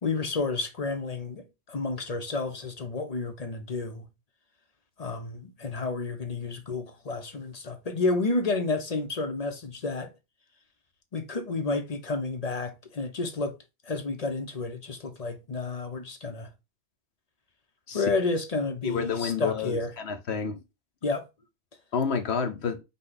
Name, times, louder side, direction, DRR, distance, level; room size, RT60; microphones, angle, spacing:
voice 1, 0.0-4.1 5.0-10.1 11.1-13.6 13.9-16.5 17.9-19.9 21.0-21.3, left 3 dB, 40° left, 0.8 m, -30 dB
voice 2, 18.8-20.6 21.9-22.8, left 6 dB, 75° left, 1.1 m, -29 dB
5.5 x 2.3 x 3.9 m
omnidirectional pair, 1.1 m